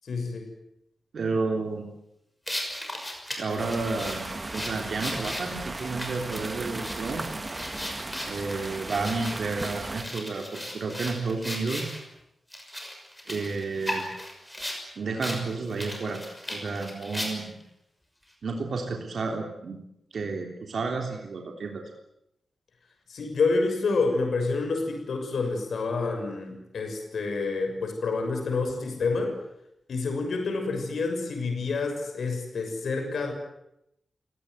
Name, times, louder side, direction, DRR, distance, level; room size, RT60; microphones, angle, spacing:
voice 1, 0.0-0.5 23.1-29.3 29.9-33.3, left 3 dB, 75° left, 4 dB, 6.5 m, -28 dB
voice 2, 1.1-1.9 3.4-4.3 4.5-7.2 8.3-11.9 13.3-14.0 15.0-16.2 16.5-17.6 18.4-19.8 20.1-21.8, right 4 dB, 60° right, 2 dB, 3.5 m, -31 dB
sound 1, 2.5-12.0 12.5-14.8 15.2-15.4 15.7-17.6, left 1 dB, 5° left, 6.2 m, -36 dB
sound 2, 3.6-10.1, right 2 dB, 20° right, 1.4 m, -36 dB
29.0 x 18.0 x 9.6 m, 0.83 s
wide cardioid pair, 170°, 0 cm